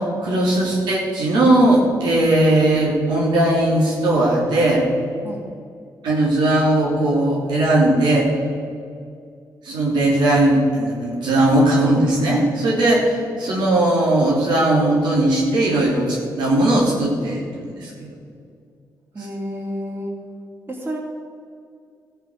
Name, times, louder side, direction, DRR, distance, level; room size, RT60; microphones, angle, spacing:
voice 1, 0.0-4.8 6.0-8.3 9.6-18.1, right 1 dB, 90° right, -4 dB, 3.1 m, -18 dB
voice 2, 19.1-20.1 20.7-21.0, equal, 30° right, -2 dB, 2.8 m, -30 dB
14.5 x 6.8 x 6.5 m, 2.3 s
cardioid pair, 70°, 7 cm